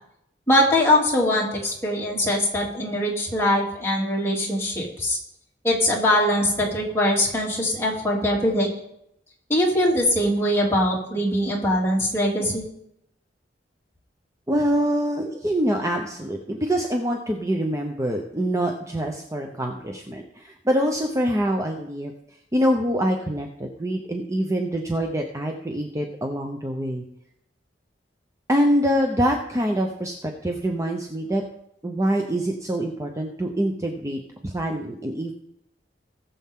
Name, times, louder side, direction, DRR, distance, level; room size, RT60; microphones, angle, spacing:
voice 1, 0.5-5.2 5.6-8.7 9.5-12.6, left 1 dB, 15° left, -4 dB, 3.0 m, -22 dB
voice 2, 14.5-22.1 22.5-27.0 28.5-31.4 31.8-35.3, equal, 15° right, 2 dB, 0.8 m, -25 dB
19.0 x 7.1 x 3.7 m, 0.77 s
head